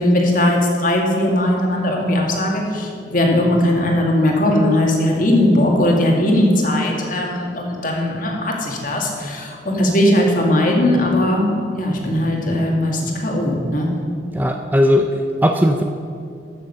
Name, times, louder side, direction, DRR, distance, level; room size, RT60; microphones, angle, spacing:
voice 1, 0.0-13.9, left 1 dB, 45° left, 0 dB, 2.0 m, -18 dB
voice 2, 14.3-15.8, equal, 10° right, 5 dB, 0.5 m, -17 dB
14.0 x 6.6 x 6.6 m, 2.4 s
head